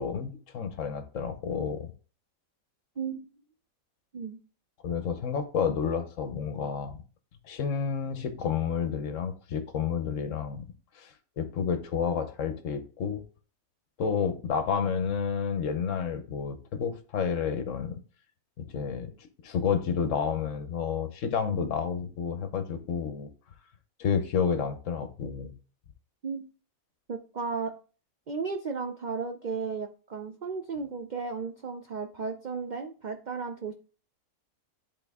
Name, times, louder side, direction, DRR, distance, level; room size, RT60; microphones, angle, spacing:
voice 1, 0.0-1.9 4.8-7.0 7.4-10.7 10.9-13.2 14.0-18.0 18.7-23.3 24.0-25.5, left 6 dB, 65° left, 1.1 m, -30 dB
voice 2, 27.1-27.7 28.3-33.7, right 5 dB, 65° right, 0.4 m, -34 dB
10.5 x 3.6 x 3.5 m
omnidirectional pair, 1.5 m